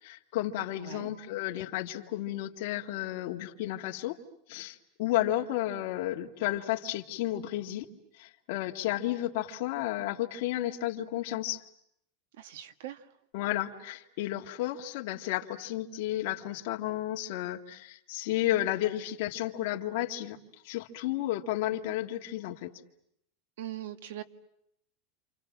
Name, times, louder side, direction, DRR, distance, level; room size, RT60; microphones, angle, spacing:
voice 1, 0.0-4.2 4.5-7.9 8.2-11.6 13.3-20.4 20.6-22.7, left 14 dB, 55° left, 2 dB, 2.1 m, -32 dB
voice 2, 0.8-1.1 12.4-13.1 23.6-24.2, right 12 dB, 85° right, 10 dB, 1.8 m, -41 dB
28.5 x 28.5 x 7.4 m, 0.75 s
supercardioid pair, 180°, 0 cm